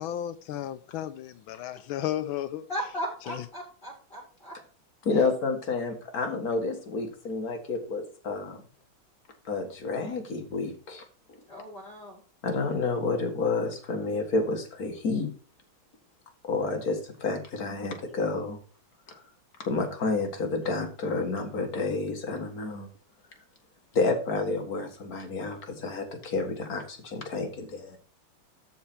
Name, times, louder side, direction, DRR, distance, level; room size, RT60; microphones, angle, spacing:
voice 1, 0.0-2.6, left 11 dB, 80° left, 1.4 m, -33 dB
voice 2, 2.7-4.6 5.1-5.3 11.5-12.2, equal, 25° left, 5.3 m, -37 dB
voice 3, 5.0-8.6 9.5-11.0 12.4-15.3 16.4-18.6 19.1-19.2 19.6-22.9 23.9-28.0, left 3 dB, 45° left, 2.0 m, -30 dB
13.0 x 4.5 x 4.3 m
omnidirectional pair, 2.2 m